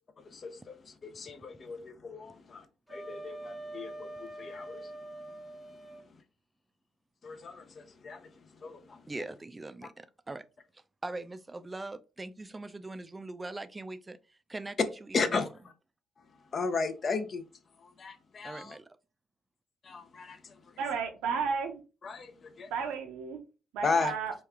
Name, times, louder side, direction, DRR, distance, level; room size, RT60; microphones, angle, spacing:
voice 1, 0.2-4.9 7.2-8.3 8.6-9.0 15.1-15.5 16.5-17.4 18.0-18.8 19.8-20.5 22.0-22.7 23.8-24.1, left 4 dB, 45° left, 0.6 m, -35 dB
Wind instrument woodwind instrument, 2.9-6.1, right 1 dB, ahead, 0.9 m, -44 dB
voice 2, 9.1-10.4 10.7-15.5 18.4-19.0, right 2 dB, 20° right, 0.4 m, -42 dB
voice 3, 20.8-21.8 22.7-23.4 23.7-24.3, right 5 dB, 75° right, 0.7 m, -33 dB
3.1 x 2.3 x 3.5 m
supercardioid pair, 60°, 0 cm